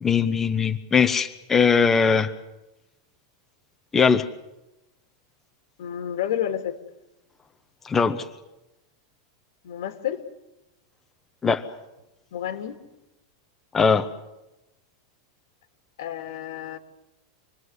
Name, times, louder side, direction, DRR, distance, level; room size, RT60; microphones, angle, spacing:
voice 1, 0.0-2.3 3.9-4.2 7.8-8.2 11.4-11.6 13.7-14.1, left 5 dB, 15° left, 7 dB, 0.9 m, -20 dB
voice 2, 5.8-6.8 9.6-10.2 12.3-12.8 16.0-16.8, left 10 dB, 75° left, 7 dB, 2.5 m, -30 dB
27.0 x 20.5 x 8.1 m, 0.96 s
supercardioid pair, 155°, 2 cm